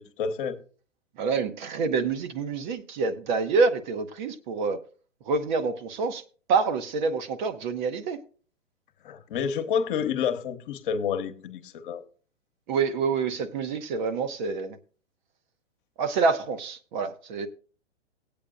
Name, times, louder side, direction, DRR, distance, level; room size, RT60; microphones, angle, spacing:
voice 1, 0.2-0.6 9.0-12.0, left 7 dB, 45° left, 1.2 m, -29 dB
voice 2, 1.2-4.8 5.3-6.2 6.5-8.2 12.7-14.8 16.0-17.5, right 4 dB, 40° right, 1.0 m, -27 dB
18.5 x 8.7 x 2.5 m
figure-of-eight pair, 115°, 37 cm